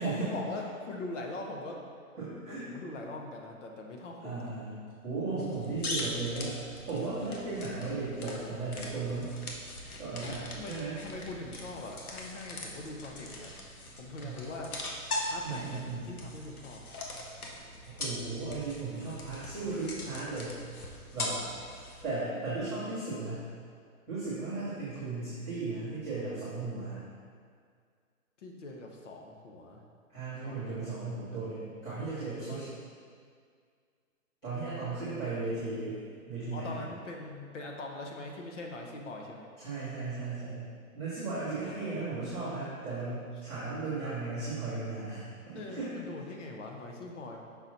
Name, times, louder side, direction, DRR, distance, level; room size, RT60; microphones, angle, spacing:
voice 1, 0.0-1.8 2.5-4.4 10.6-13.6 13.9-14.9 15.2-16.8 28.4-29.8 30.4-30.9 31.3-31.7 31.9-32.2 32.4-32.6 36.5-39.5 41.5-42.1 45.5-47.4, left 2 dB, 55° left, 1 dB, 1.0 m, -42 dB
voice 2, 2.2-2.6 4.2-4.7 5.0-6.6 6.9-9.3 10.0-11.0 14.2-14.4 15.4-16.1 17.9-20.6 21.1-21.4 22.0-23.5 24.1-27.0 30.1-32.7 34.4-36.0 36.3-36.8 39.6-40.7 40.9-45.9, right 3 dB, 5° left, -20 dB, 0.5 m, -36 dB
sound 1, 5.4-22.0, left 1 dB, 85° left, 1.2 m, -41 dB
5.9 x 4.3 x 4.0 m, 2.1 s
hypercardioid pair, 160°, 43 cm